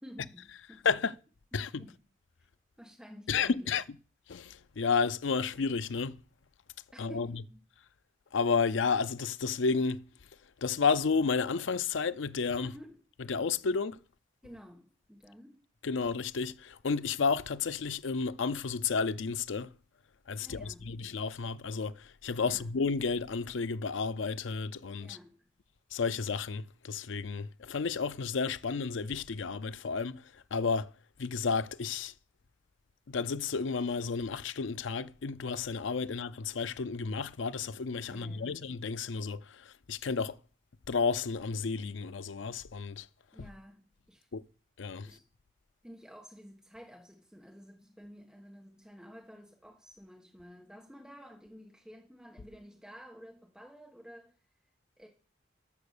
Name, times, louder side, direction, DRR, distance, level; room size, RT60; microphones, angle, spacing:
voice 1, 0.0-0.8 1.5-2.0 2.8-3.8 6.9-7.6 12.6-12.9 14.4-15.6 20.4-20.9 22.4-22.7 25.0-25.5 38.1-38.6 43.3-44.3 45.0-45.2 45.8-54.3 55.0-55.1, equal, 5° right, 1.4 m, -52 dB
voice 2, 1.5-1.9 3.3-3.8 4.3-6.2 7.0-7.4 8.3-10.0 10.6-12.7 13.3-14.0 15.8-19.7 20.3-25.2 25.9-30.9 31.2-32.1 33.1-40.4 40.9-43.1 43.4-43.5 44.3-44.4 44.8-45.1, left 5 dB, 80° left, 0.5 m, -32 dB
12.0 x 7.0 x 6.6 m
head